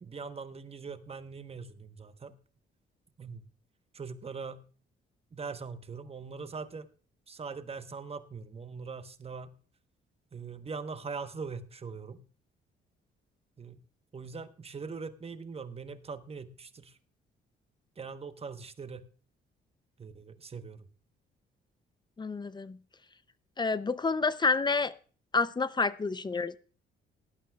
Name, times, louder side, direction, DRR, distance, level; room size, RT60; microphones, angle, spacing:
voice 1, 0.0-2.3 3.2-3.4 3.9-4.6 5.3-6.9 7.3-9.5 10.3-12.2 13.6-13.8 14.1-17.0 18.0-19.0 20.0-20.9, right 5 dB, 30° right, 9 dB, 1.0 m, -41 dB
voice 2, 22.2-22.8 23.6-24.9 25.3-26.6, left 4 dB, 20° left, 17 dB, 0.5 m, -29 dB
18.5 x 11.5 x 2.3 m, 0.40 s
cardioid pair, 90°, 20 cm